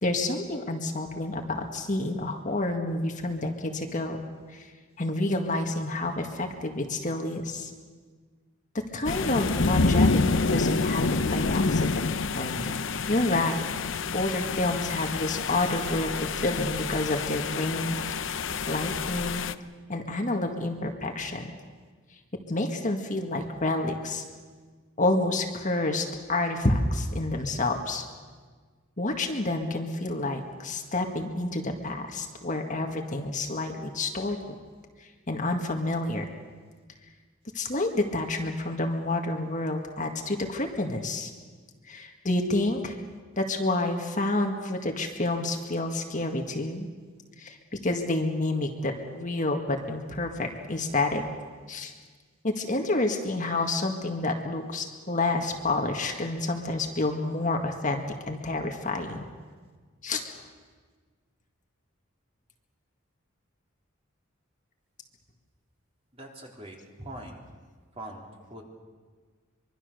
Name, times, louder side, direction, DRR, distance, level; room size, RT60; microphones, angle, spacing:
voice 1, 0.0-4.2 4.5-4.7 5.0-7.7 8.9-12.6 13.1-13.6 14.1-19.4 19.9-21.5 22.5-24.2 25.0-28.1 29.0-34.4 35.3-36.3 37.5-41.3 41.9-43.0 43.4-46.9 47.4-47.6 47.8-51.2 51.7-51.9 52.4-59.2 60.0-60.2, left 2 dB, 40° left, 3 dB, 1.9 m, -29 dB
sound 1, 9.1-19.5, left 4 dB, 65° left, 0.7 m, -28 dB
voice 2, 66.1-67.4 67.9-68.6, right 1 dB, 30° right, 0 dB, 3.7 m, -42 dB
24.5 x 23.0 x 6.8 m, 1.5 s
head